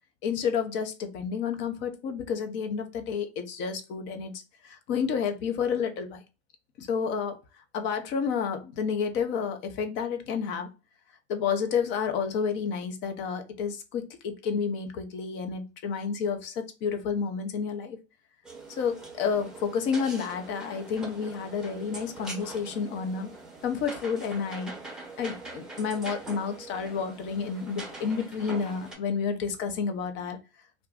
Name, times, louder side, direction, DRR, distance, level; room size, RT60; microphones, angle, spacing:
voice 1, 0.2-6.2 6.8-7.4 7.7-10.7 11.3-18.0 18.7-23.3 23.6-24.8 25.2-30.4, left 6 dB, 35° left, 0.6 m, -30 dB
sound 1, 18.5-29.0, right 3 dB, ahead, 0.9 m, -43 dB
2.5 x 2.2 x 3.4 m
hypercardioid pair, 110°, 34 cm